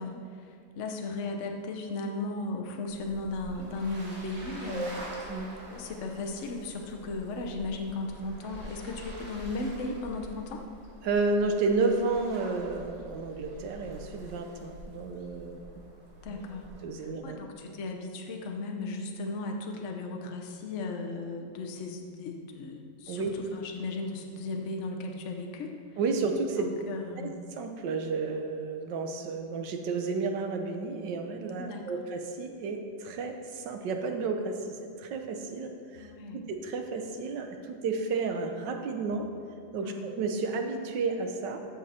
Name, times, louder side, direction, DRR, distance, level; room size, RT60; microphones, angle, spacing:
voice 1, 0.0-5.0 5.7-10.6 16.2-16.7 17.0-25.7 26.5-27.3 31.6-31.9 36.0-36.4 39.8-40.1, left 3 dB, 50° left, 3 dB, 1.0 m, -36 dB
sound 1, 2.9-16.8, right 1 dB, 50° right, 2.1 m, -46 dB
voice 2, 11.0-15.6 16.3-16.4 16.8-17.4 23.1-23.3 26.0-26.7 27.2-27.3 27.6-39.3 39.7-41.6, right 4 dB, 85° right, 5 dB, 1.5 m, -31 dB
13.0 x 6.6 x 4.3 m, 2.3 s
omnidirectional pair, 1.9 m